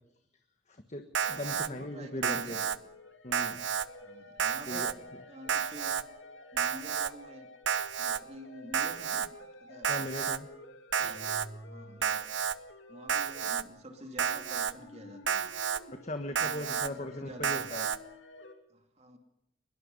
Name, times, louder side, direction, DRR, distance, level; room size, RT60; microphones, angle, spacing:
voice 1, 0.7-1.0 1.3-2.6 3.2-3.6 4.7-4.9 9.9-10.5 16.0-17.9, left 1 dB, 35° left, 6 dB, 1.4 m, -38 dB
Alarm, 1.1-1.7 2.2-2.8 3.3-3.9 4.4-4.9 5.5-6.0 6.6-7.1 7.7-8.2 8.7-9.3 9.8-10.4 10.9-11.5 12.0-12.6 13.1-13.6 14.2-14.7 15.3-15.8 16.4-16.9 17.4-18.0, right 7 dB, 85° right, 0.8 m, -31 dB
sound 1, 1.2-18.5, left 1 dB, 85° left, 2.9 m, -52 dB
voice 2, 1.2-2.7 4.0-4.9 5.3-6.1 6.5-7.5 8.0-9.3 9.6-10.1 11.6-12.4 12.9-15.5 16.3-17.7 18.7-19.2, equal, 35° right, 5 dB, 2.7 m, -48 dB
sound 2, 11.0-12.4, right 1 dB, 5° left, 3.5 m, -48 dB
23.0 x 22.0 x 5.5 m, 0.84 s
head